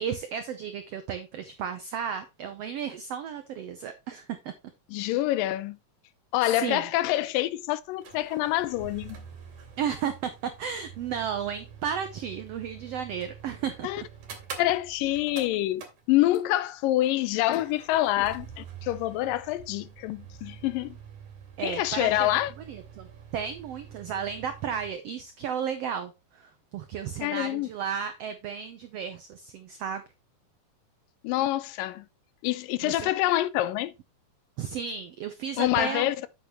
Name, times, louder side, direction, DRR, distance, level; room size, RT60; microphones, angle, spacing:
voice 1, 0.0-4.5 6.4-6.8 9.8-14.1 21.6-22.3 22.7-23.1 23.3-30.0 32.8-33.1 34.6-36.1, right 7 dB, 85° right, 1.4 m, -33 dB
voice 2, 4.9-5.8 6.3-9.2 13.8-14.0 14.6-21.0 21.6-22.5 27.2-27.7 31.2-32.1 32.4-33.9 35.6-36.3, left 15 dB, 85° left, 2.4 m, -26 dB
sound 1, 6.5-6.6 6.8-6.9 7.8-16.7 17.5-24.9, right 7 dB, 65° right, 3.5 m, -46 dB
8.2 x 7.9 x 3.0 m
omnidirectional pair, 3.9 m